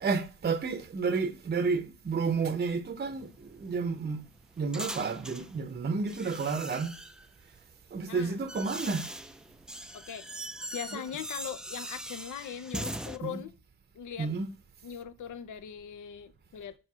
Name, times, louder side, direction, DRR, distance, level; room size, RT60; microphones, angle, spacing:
voice 1, 0.0-4.2 4.6-7.0 7.9-9.1 10.9-11.0 13.2-13.4 14.2-14.5, right 4 dB, 30° right, 0.8 m, -31 dB
sound 1, 3.1-5.5 6.1-7.3 8.0-13.2, right 1 dB, ahead, 0.4 m, -41 dB
voice 2, 8.1-8.4 9.9-10.3 10.7-13.5 13.9-14.3 14.8-16.8, left 8 dB, 60° left, 0.7 m, -40 dB
6.3 x 4.7 x 6.0 m
cardioid pair, 115°, 34 cm